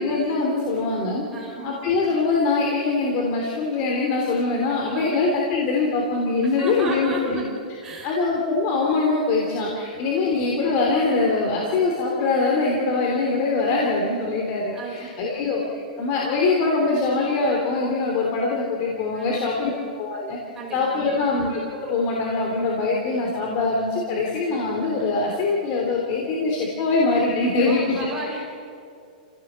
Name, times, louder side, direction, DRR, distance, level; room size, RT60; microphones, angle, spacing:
voice 1, 0.0-1.2 1.6-7.4 8.0-15.6 16.0-20.4 20.7-28.0 28.3-28.4, left 3 dB, 35° left, -1 dB, 3.2 m, -23 dB
voice 2, 1.3-1.7 4.9-5.1 6.4-7.4 7.8-8.1 9.6-9.7 9.9-10.6 14.7-15.4 19.1-19.8 20.5-21.3 27.6-28.4, right 2 dB, 10° right, -2 dB, 4.8 m, -35 dB
28.0 x 16.5 x 7.5 m, 2.3 s
supercardioid pair, 165°, 5 cm